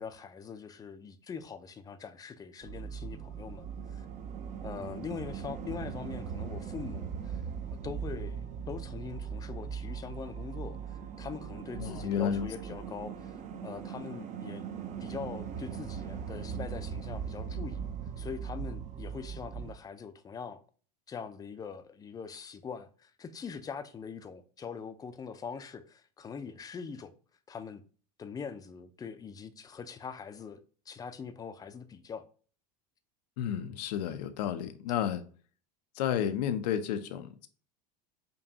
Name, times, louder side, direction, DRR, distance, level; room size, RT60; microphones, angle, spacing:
voice 1, 0.0-4.1 4.6-7.4 7.8-13.4 13.6-14.6 15.0-17.9 18.2-20.6 21.1-27.1 27.5-27.8 28.2-30.6 30.9-32.3, left 6 dB, 20° left, 0.4 m, -42 dB
sound 1, 2.6-19.7, right 7 dB, 35° right, 0.6 m, -39 dB
voice 2, 11.8-12.5 33.4-35.2 35.9-37.5, left 9 dB, 85° left, 0.5 m, -31 dB
5.2 x 2.2 x 2.7 m
supercardioid pair, 115°, 20 cm